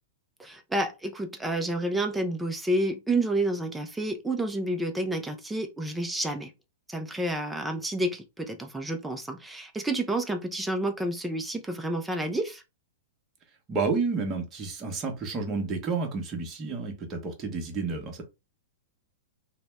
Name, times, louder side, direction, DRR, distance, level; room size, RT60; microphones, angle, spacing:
voice 1, 0.4-6.5 6.9-12.6, right 1 dB, 5° right, 0.4 m, -29 dB
voice 2, 13.7-18.2, right 4 dB, 25° right, 0.9 m, -30 dB
2.7 x 2.1 x 3.3 m
hypercardioid pair, 135°, 0 cm